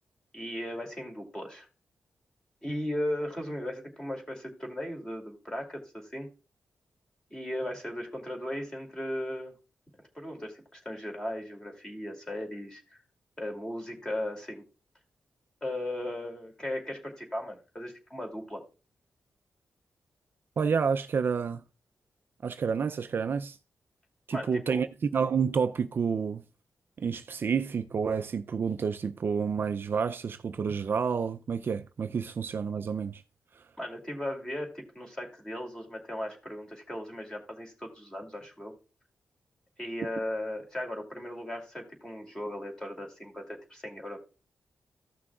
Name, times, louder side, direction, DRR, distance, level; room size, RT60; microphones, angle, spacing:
voice 1, 0.3-1.7 2.6-6.3 7.3-9.5 10.1-13.0 13.4-14.6 15.6-18.6 24.3-24.8 33.8-38.7 39.8-44.2, left 1 dB, 15° left, 2.5 m, -37 dB
voice 2, 20.6-21.6 22.4-23.6 24.3-24.9 25.1-26.4 27.0-33.2, right 6 dB, 50° right, 0.4 m, -29 dB
15.0 x 6.1 x 2.3 m
wide cardioid pair, 120°, 5 cm